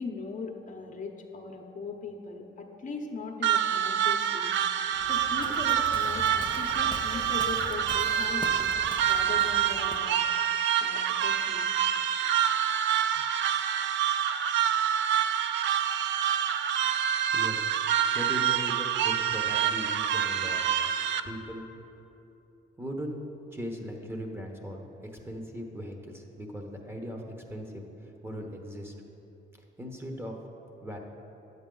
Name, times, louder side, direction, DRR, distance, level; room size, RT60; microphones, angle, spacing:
voice 1, 0.0-4.6 5.0-8.7 9.0-10.3 10.8-11.7, left 4 dB, 40° left, 2 dB, 0.9 m, -39 dB
sound 1, 3.4-21.2, right 9 dB, 65° right, 0.4 m, -27 dB
Waves surf, 4.9-10.2, left 3 dB, 25° left, 0.5 m, -43 dB
voice 2, 17.3-17.7 18.1-20.6 21.2-21.7 22.8-23.2 23.5-24.8 25.1-28.9 29.8-30.4 30.8-31.0, equal, 10° right, 2 dB, 1.0 m, -38 dB
9.8 x 8.0 x 3.8 m, 2.9 s
cardioid pair, 90°, 20 cm